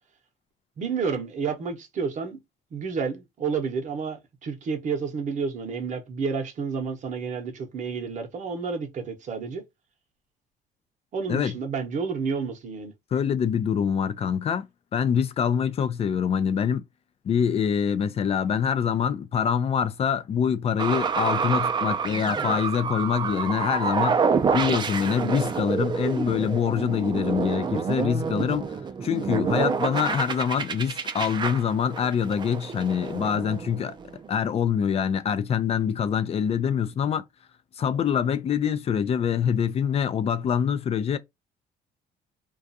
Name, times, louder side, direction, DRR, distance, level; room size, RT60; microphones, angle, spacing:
voice 1, 0.8-2.4 2.7-9.6 11.1-12.9, right 5 dB, 45° right, 0.8 m, -30 dB
voice 2, 13.1-14.7 14.9-16.8 17.2-24.2 24.5-28.8 29.0-33.9 34.3-37.2 37.8-41.2, left 7 dB, 35° left, 0.4 m, -25 dB
sound 1, 20.8-34.3, right 6 dB, 25° right, 0.4 m, -28 dB
2.4 x 2.3 x 2.6 m
cardioid pair, 110°, 17 cm